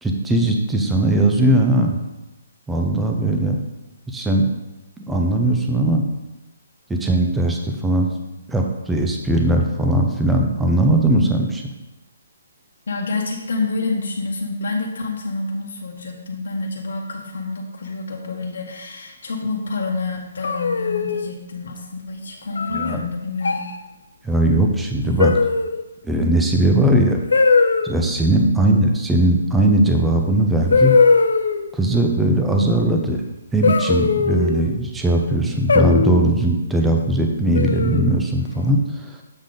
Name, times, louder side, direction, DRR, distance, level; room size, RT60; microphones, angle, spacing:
voice 1, 0.0-2.0 2.7-3.6 4.1-4.5 5.0-6.0 6.9-8.1 8.5-11.6 22.8-23.0 24.2-25.3 26.1-27.2 27.8-30.9 31.7-33.2 33.5-39.0, right 1 dB, 5° right, 2 dB, 0.5 m, -19 dB
voice 2, 12.9-23.7 28.4-28.6, left 3 dB, 55° left, -1 dB, 1.1 m, -28 dB
sound 1, 20.4-21.3 22.6-22.9 23.4-23.8 25.2-25.8 27.3-27.9 29.8-29.9 30.7-31.7 33.6-34.7 35.7-36.3 37.5-38.1, left 4 dB, 80° left, 0.6 m, -18 dB
7.3 x 3.9 x 5.0 m, 1.0 s
hypercardioid pair, 180°, 0 cm